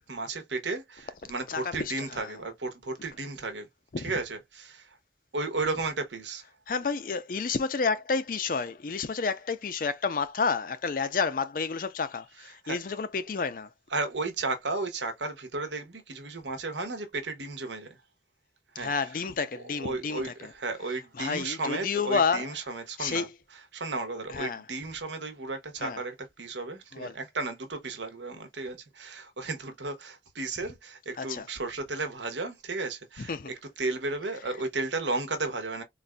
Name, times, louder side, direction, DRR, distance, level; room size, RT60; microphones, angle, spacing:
voice 1, 0.0-3.7 4.0-4.9 5.3-6.4 12.6-12.8 13.9-17.9 18.8-18.9 19.6-23.3 23.7-35.8, right 3 dB, 85° right, 1.1 m, -34 dB
voice 2, 1.5-2.4 3.9-4.2 6.7-13.7 18.8-20.5 21.2-22.6 23.0-23.3 24.3-24.6 25.8-26.0 26.9-27.1 31.2-31.5 33.2-33.5, left 5 dB, 50° left, 0.5 m, -30 dB
3.9 x 2.5 x 2.2 m
head